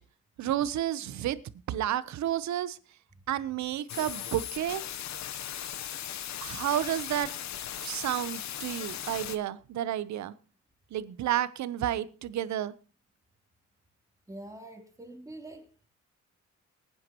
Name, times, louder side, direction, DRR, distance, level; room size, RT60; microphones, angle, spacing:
voice 1, 0.4-1.4 1.7-2.8 3.3-4.8 6.4-7.3 7.8-10.3 10.9-12.7, right 11 dB, 65° right, 0.8 m, -31 dB
sound 1, 3.9-9.4, left 10 dB, 65° left, 1.0 m, -38 dB
voice 2, 14.3-15.9, right 1 dB, 10° right, 3.2 m, -45 dB
20.0 x 9.5 x 3.0 m
cardioid pair, 90°, 30 cm